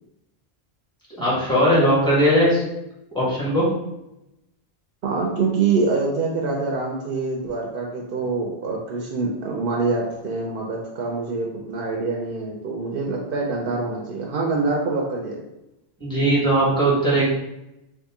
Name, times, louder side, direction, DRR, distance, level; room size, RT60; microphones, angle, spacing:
voice 1, 1.2-2.6 3.1-3.7 16.0-17.3, right 1 dB, 5° left, -8 dB, 1.3 m, -19 dB
voice 2, 5.0-15.5, right 4 dB, 65° right, -1 dB, 0.7 m, -25 dB
2.7 x 2.5 x 3.6 m, 0.88 s
omnidirectional pair, 1.1 m